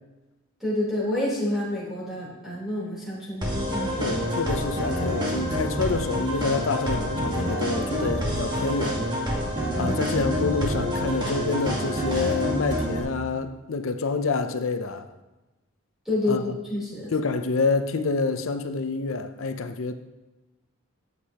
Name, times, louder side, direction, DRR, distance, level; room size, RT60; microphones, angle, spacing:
voice 1, 0.6-4.2 9.8-10.0 16.0-17.1, left 1 dB, ahead, 3.6 m, -28 dB
sound 1, 3.4-13.0, equal, 20° right, 1.5 m, -27 dB
voice 2, 4.0-9.0 9.8-15.1 16.3-16.4 17.1-19.9, left 4 dB, 70° left, 0.6 m, -27 dB
12.5 x 8.3 x 2.9 m
head